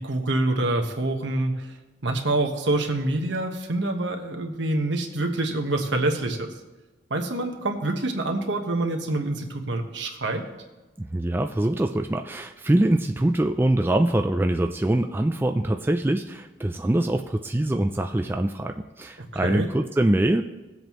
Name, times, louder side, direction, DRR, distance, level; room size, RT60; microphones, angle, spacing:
voice 1, 0.0-1.7 2.0-6.5 7.1-10.4 19.3-19.7, right 2 dB, 70° right, 3 dB, 1.3 m, -26 dB
voice 2, 11.0-20.4, right 1 dB, 10° right, 5 dB, 0.3 m, -24 dB
18.0 x 7.9 x 3.1 m, 1.2 s
head